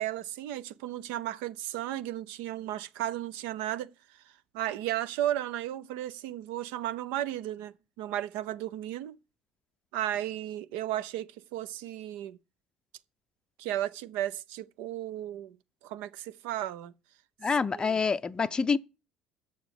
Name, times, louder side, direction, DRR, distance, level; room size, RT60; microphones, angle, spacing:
voice 1, 0.0-3.9 4.5-9.2 9.9-12.4 13.6-15.6 15.8-16.9 17.7-18.0, right 13 dB, 65° right, 0.7 m, -34 dB
voice 2, 17.4-18.8, left 5 dB, 25° left, 0.5 m, -27 dB
7.8 x 6.9 x 8.4 m
figure-of-eight pair, 55°, 3 cm